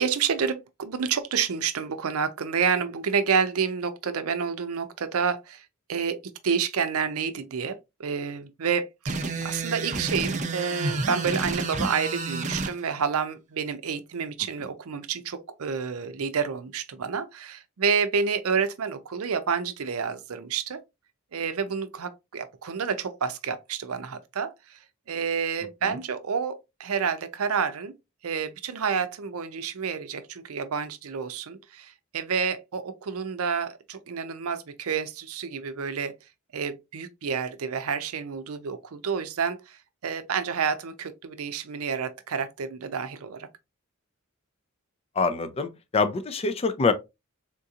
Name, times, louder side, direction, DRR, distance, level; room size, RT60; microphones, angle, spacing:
voice 1, 0.0-6.2 6.4-20.8 21.3-24.8 25.1-27.9 28.2-36.1 36.5-43.5, right 6 dB, 80° right, 0.5 m, -29 dB
sound 1, 9.1-12.7, right 3 dB, 35° right, 0.5 m, -30 dB
voice 2, 45.2-46.9, left 4 dB, 25° left, 0.4 m, -25 dB
3.7 x 2.8 x 2.4 m
head